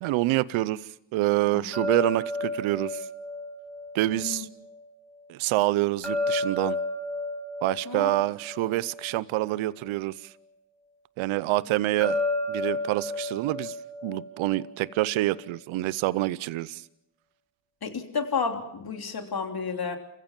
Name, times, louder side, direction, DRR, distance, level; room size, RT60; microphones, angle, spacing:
voice 1, 0.0-3.1 3.9-4.5 5.3-6.8 7.6-10.3 11.2-12.2 12.5-13.8 14.0-16.8, right 17 dB, 85° right, 0.7 m, -27 dB
sound 1, 1.7-4.8 6.0-9.5 12.0-15.1, left 2 dB, ahead, 6.5 m, -32 dB
voice 2, 4.1-4.4 7.9-8.1 17.8-20.0, left 5 dB, 50° left, 3.3 m, -31 dB
28.5 x 16.0 x 7.4 m
supercardioid pair, 50°, 47 cm